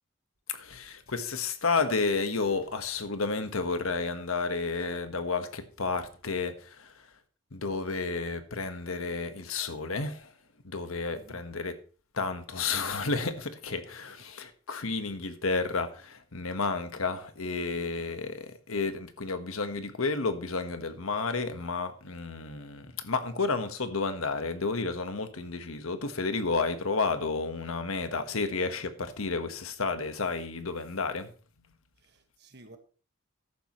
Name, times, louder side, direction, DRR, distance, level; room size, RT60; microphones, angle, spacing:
voice 1, 0.5-7.1 7.5-10.3 10.6-11.7 12.1-31.3, left 4 dB, 80° left, 1.4 m, -31 dB
voice 2, 11.1-11.4 14.1-14.2 32.0-32.8, right 1 dB, 50° right, 1.6 m, -54 dB
14.5 x 11.0 x 3.1 m
head